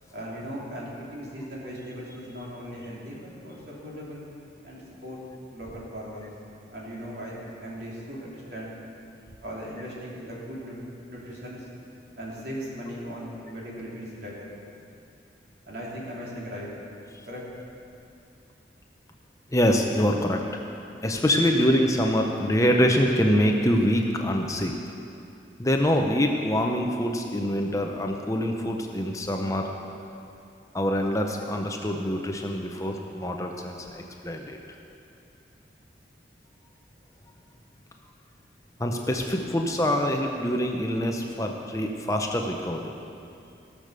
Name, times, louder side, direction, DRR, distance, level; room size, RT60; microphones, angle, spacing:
voice 1, 0.1-4.2 4.6-5.2 5.5-6.3 6.7-8.7 9.4-11.7 12.2-14.5 15.6-16.7 17.3-17.4, equal, 60° right, -5 dB, 3.2 m, -38 dB
voice 2, 19.5-20.4 21.0-24.7 25.6-29.7 30.7-34.6 38.8-42.9, equal, 15° left, 2 dB, 0.7 m, -25 dB
17.0 x 6.7 x 6.7 m, 2.6 s
head